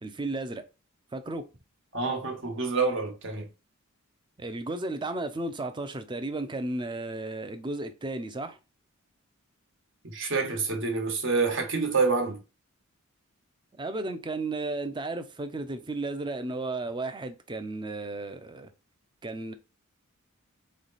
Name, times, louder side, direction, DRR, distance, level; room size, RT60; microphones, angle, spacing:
voice 1, 0.0-0.6 1.1-1.5 4.4-8.6 13.8-18.7 19.2-19.5, right 2 dB, 20° right, 0.5 m, -34 dB
voice 2, 1.9-3.5 10.0-12.4, right 4 dB, 60° right, 1.3 m, -27 dB
3.8 x 3.2 x 4.1 m
head